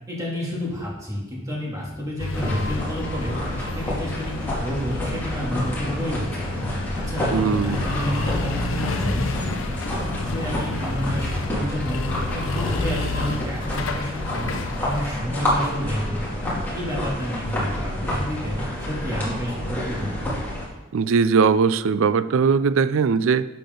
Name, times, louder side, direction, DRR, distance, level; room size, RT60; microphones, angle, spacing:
voice 1, 0.1-6.6 6.9-9.8 10.2-12.0 12.3-14.5 14.8-20.4, equal, 15° right, -5 dB, 2.6 m, -30 dB
sound 1, 2.2-15.1, left 2 dB, 75° left, 0.8 m, -30 dB
sound 2, 2.3-20.7, left 1 dB, 10° left, 2.6 m, -29 dB
voice 2, 7.3-7.8 20.9-23.5, right 5 dB, 70° right, 14 dB, 0.4 m, -20 dB
11.5 x 6.8 x 3.9 m, 1.1 s
head